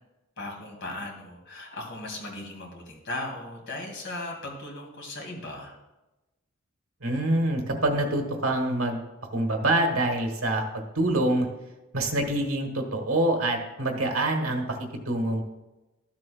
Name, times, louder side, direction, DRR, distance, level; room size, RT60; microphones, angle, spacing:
voice 1, 0.4-5.8, left 2 dB, 60° left, 0 dB, 2.3 m, -37 dB
voice 2, 7.0-9.0 9.3-11.5 11.9-15.4, right 1 dB, 80° right, 3 dB, 1.4 m, -26 dB
13.0 x 7.5 x 2.3 m, 1.0 s
head